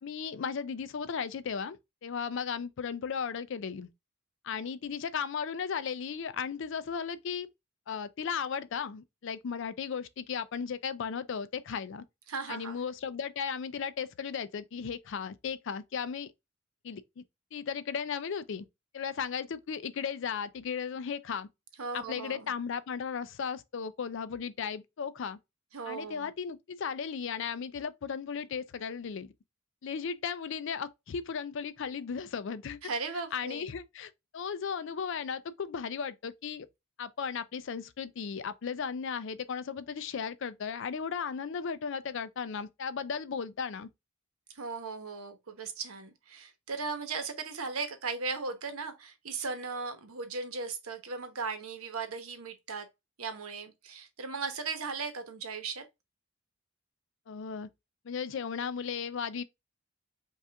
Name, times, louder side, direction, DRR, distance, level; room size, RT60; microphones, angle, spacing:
voice 1, 0.0-1.8 2.0-3.9 4.4-7.5 7.9-12.0 12.5-16.3 16.8-17.2 17.5-18.6 18.9-21.5 21.9-25.4 25.9-29.3 29.8-32.8 33.3-36.7 37.0-43.9 57.3-57.7 58.0-59.4, left 6 dB, 60° left, 0.4 m, -36 dB
voice 2, 12.3-12.7 21.8-22.5 25.7-26.3 32.8-33.6 44.5-52.9 53.2-55.8, right 4 dB, 85° right, 1.0 m, -37 dB
5.4 x 2.5 x 3.4 m
head